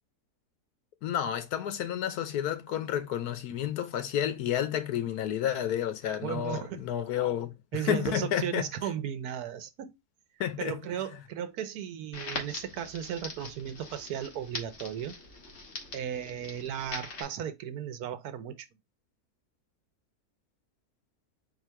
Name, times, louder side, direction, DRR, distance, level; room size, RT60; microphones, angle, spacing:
voice 1, 1.0-8.7 10.4-10.8, left 10 dB, 75° left, 1.2 m, -31 dB
voice 2, 6.2-6.9 7.7-10.0 10.6-15.2 15.9-18.7, right 9 dB, 75° right, 1.2 m, -35 dB
Crackle, 12.1-17.2, left 3 dB, 50° left, 1.4 m, -42 dB
4.2 x 2.5 x 4.4 m
omnidirectional pair, 1.7 m